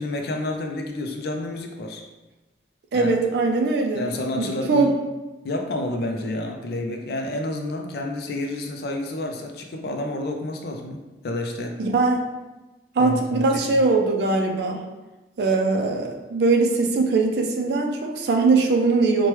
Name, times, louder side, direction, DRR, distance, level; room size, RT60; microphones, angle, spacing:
voice 1, 0.0-2.0 2.9-3.1 3.9-4.9 5.4-11.8 13.0-13.8, left 1 dB, 60° left, 3 dB, 0.4 m, -29 dB
voice 2, 2.9-4.0 4.4-4.9 11.8-12.2 13.0-14.8 15.4-19.3, right 3 dB, 70° right, 2 dB, 0.4 m, -21 dB
3.2 x 2.2 x 2.9 m, 1.1 s
head